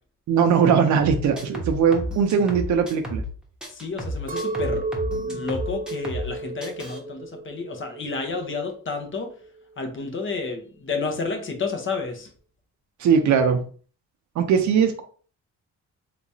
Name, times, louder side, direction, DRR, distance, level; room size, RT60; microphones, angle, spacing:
voice 1, 0.3-3.2 13.0-13.6 14.4-15.0, right 7 dB, 70° right, 6 dB, 0.7 m, -20 dB
sound 1, 1.0-3.3 3.6-6.3 6.6-7.0, equal, 5° right, 1.0 m, -32 dB
voice 2, 3.7-9.3 9.8-12.3, left 4 dB, 40° left, 4 dB, 0.9 m, -31 dB
Chink clink, 4.3-8.6 9.0-9.6, right 3 dB, 30° right, 0.5 m, -32 dB
3.5 x 3.0 x 2.7 m, 0.42 s
cardioid pair, 90°, 30 cm